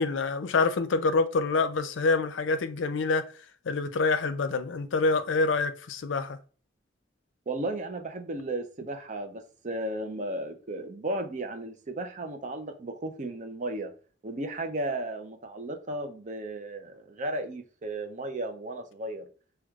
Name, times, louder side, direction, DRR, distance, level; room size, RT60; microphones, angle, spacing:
voice 1, 0.0-3.3 3.7-6.4, left 3 dB, 80° left, 0.5 m, -26 dB
voice 2, 7.5-13.9 14.2-19.3, right 1 dB, 40° right, 0.5 m, -34 dB
6.1 x 2.3 x 2.3 m
head